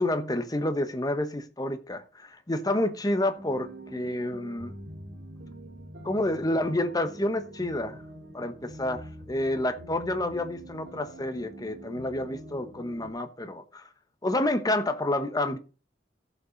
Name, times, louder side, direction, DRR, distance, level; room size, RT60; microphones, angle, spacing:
voice 1, 0.0-4.8 6.0-8.0 8.3-13.9 14.2-15.6, left 1 dB, 20° left, 1.0 m, -29 dB
sound 1, 3.4-13.1, right 1 dB, 80° right, 2.6 m, -45 dB
15.0 x 5.8 x 4.0 m
head